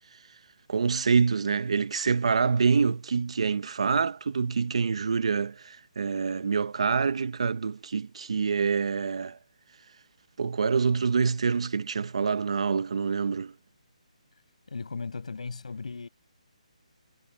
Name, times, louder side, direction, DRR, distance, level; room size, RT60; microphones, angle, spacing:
voice 1, 0.7-9.4 10.4-13.5, right 5 dB, 55° right, 0.9 m, -26 dB
voice 2, 14.7-16.1, left 4 dB, 70° left, 6.7 m, -36 dB
hypercardioid pair, 175°, 4 cm